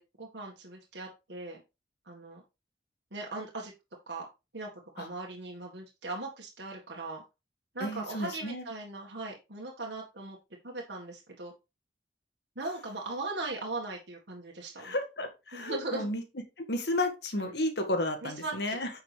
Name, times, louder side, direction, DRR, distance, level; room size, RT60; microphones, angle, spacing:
voice 1, 0.0-1.6 2.1-2.4 3.1-3.7 4.1-4.3 4.5-4.7 4.9-7.2 7.7-10.4 10.6-11.5 12.6-15.0 15.5-16.1 17.3-17.5 18.2-18.8, right 2 dB, 85° right, 1.8 m, -39 dB
voice 2, 7.8-8.7 14.8-16.2 16.6-18.9, left 1 dB, 70° left, 1.9 m, -32 dB
9.5 x 5.8 x 3.4 m
head